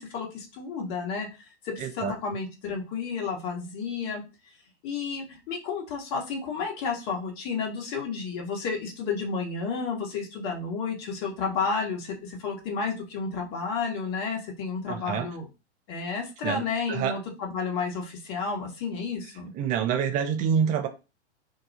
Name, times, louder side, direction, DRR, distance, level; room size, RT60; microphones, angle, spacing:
voice 1, 0.0-4.2 4.8-15.4 15.9-19.5, left 5 dB, 40° left, 1.3 m, -31 dB
voice 2, 1.8-2.1 14.9-15.3 16.4-17.2 19.5-20.9, right 7 dB, 25° right, 0.5 m, -27 dB
2.9 x 2.3 x 4.0 m
hypercardioid pair, 110°, 34 cm